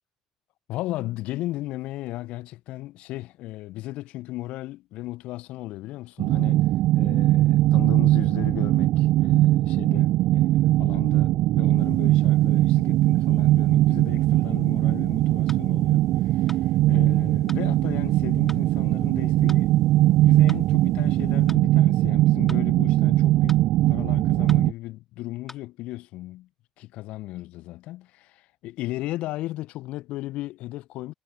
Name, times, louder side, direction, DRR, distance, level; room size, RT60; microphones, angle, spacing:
voice 1, 0.7-6.6 6.9-23.6 23.9-26.5 26.8-28.4 28.6-31.1, left 17 dB, 60° left, 1.4 m, -36 dB
sound 1, 6.2-24.7, right 15 dB, 55° right, 0.4 m, -20 dB
sound 2, 11.8-21.6, right 6 dB, 85° right, 1.2 m, -50 dB
sound 3, 15.5-15.7 16.5-16.7 17.5-17.7 18.5-18.7 19.5-19.7 20.5-20.7 21.5-21.7 22.5-22.7 23.5-23.7 24.5-24.7 25.5-25.7, left 2 dB, 10° left, 6.6 m, -43 dB
figure-of-eight pair, 60°, 2 cm